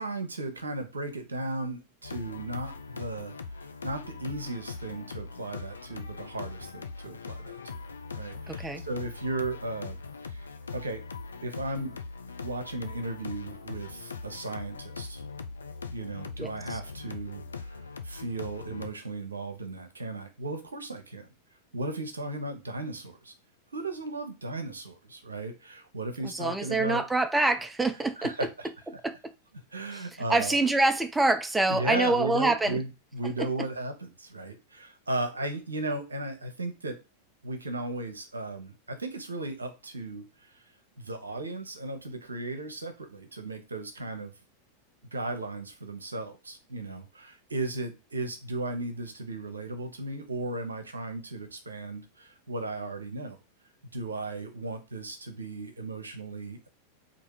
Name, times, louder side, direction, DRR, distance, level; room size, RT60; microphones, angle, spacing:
voice 1, 0.0-3.3 3.8-7.8 8.1-10.0 10.2-11.0 11.4-11.9 12.4-15.2 15.9-21.3 21.7-23.3 23.7-27.0 28.2-28.7 29.7-30.6 31.7-32.9 33.1-37.0 37.4-40.5 41.0-44.3 45.1-53.4 53.9-56.7, right 2 dB, 75° right, 0.9 m, -36 dB
sound 1, 2.0-18.9, left 4 dB, 75° left, 0.5 m, -41 dB
voice 2, 8.5-8.8 16.4-16.8 26.2-28.5 29.0-29.3 29.9-32.8 33.4-33.7, right 2 dB, 10° right, 0.4 m, -26 dB
4.1 x 2.6 x 4.8 m
figure-of-eight pair, 90°, 0 cm